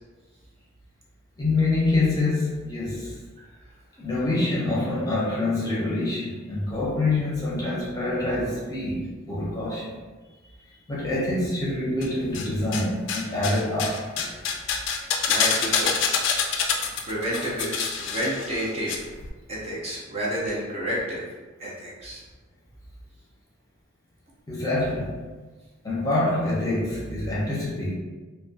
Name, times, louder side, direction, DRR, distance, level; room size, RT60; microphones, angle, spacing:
voice 1, 1.4-3.2 4.0-9.0 9.3-10.0 10.9-14.4 24.5-25.2 25.8-27.9, left 2 dB, 20° left, -6 dB, 0.6 m, -26 dB
sound 1, 12.0-12.8 13.1-19.0 19.2-19.3, left 6 dB, 65° left, 0.3 m, -26 dB
voice 2, 15.3-15.9 17.1-17.7 18.0-19.1 19.5-21.2 21.6-22.2, equal, 30° right, -6 dB, 0.5 m, -30 dB
2.3 x 2.1 x 2.6 m, 1.3 s
head